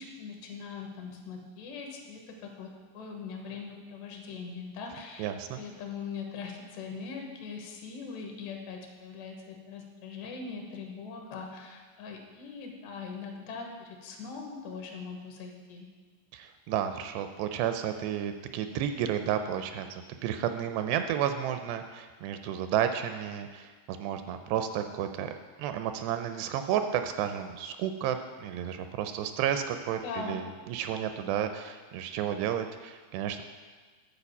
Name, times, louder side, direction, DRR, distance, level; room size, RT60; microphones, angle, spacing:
voice 1, 0.0-5.3 5.5-15.9 30.0-30.4, left 5 dB, 80° left, 2 dB, 3.2 m, -41 dB
voice 2, 5.2-5.6 16.3-25.3 25.6-33.4, right 9 dB, 85° right, 7 dB, 2.5 m, -32 dB
11.0 x 4.7 x 7.0 m, 1.4 s
omnidirectional pair, 5.0 m